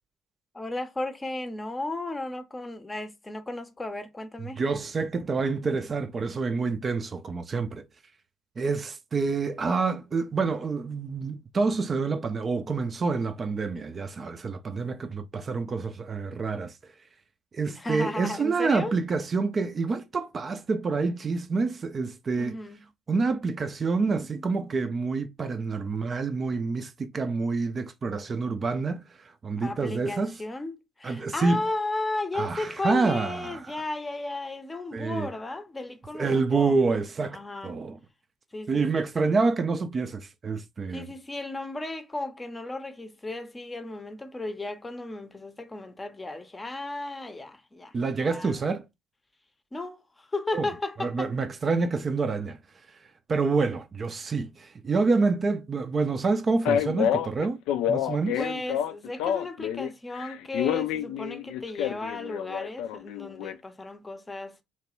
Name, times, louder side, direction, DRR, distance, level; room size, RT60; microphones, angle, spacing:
voice 1, 0.5-4.6 17.7-18.9 22.4-22.8 29.6-36.8 37.3-37.8 38.5-39.3 40.9-48.6 49.7-51.3 58.3-64.6, left 2 dB, 20° left, 0.6 m, -35 dB
voice 2, 4.6-7.8 8.6-16.9 17.5-22.6 23.1-30.4 31.0-31.7 32.3-33.8 34.9-35.3 36.1-38.0 38.7-41.1 47.9-48.8 50.5-50.7 51.0-52.6 52.9-53.0 53.3-57.6 57.9-58.4, right 4 dB, 35° right, 0.4 m, -27 dB
Male speech man speaking, 56.7-59.9 60.2-63.5, left 10 dB, 65° left, 0.3 m, -28 dB
3.0 x 2.1 x 3.0 m
figure-of-eight pair, 50°, 0 cm